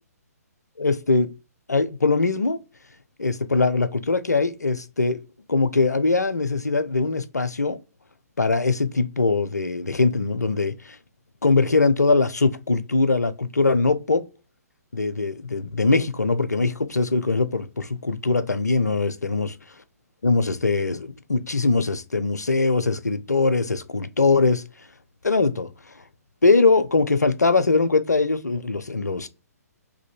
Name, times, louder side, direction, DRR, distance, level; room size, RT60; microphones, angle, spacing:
voice 1, 0.8-1.3 1.7-2.6 3.2-5.2 5.5-7.8 8.4-11.0 11.4-14.3 14.9-19.5 20.2-24.6 25.2-25.7 26.4-29.3, left 3 dB, 80° left, 0.4 m, -21 dB
3.3 x 2.6 x 4.1 m
figure-of-eight pair, 130°, 9 cm